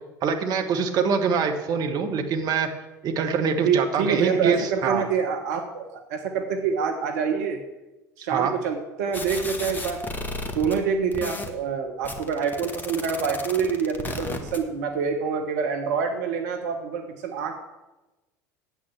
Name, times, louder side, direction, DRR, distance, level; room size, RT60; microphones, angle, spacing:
voice 1, 0.2-2.7 3.0-5.0 8.3-8.5, right 6 dB, 40° right, 5 dB, 1.5 m, -24 dB
voice 2, 3.6-7.6 8.2-10.0 10.5-17.5, right 6 dB, 65° right, 4 dB, 1.3 m, -26 dB
sound 1, 9.1-10.8 11.1-11.5 12.0-14.6, left 2 dB, 20° left, 1.8 m, -33 dB
9.2 x 8.4 x 7.6 m, 1.1 s
figure-of-eight pair, 70°, 10 cm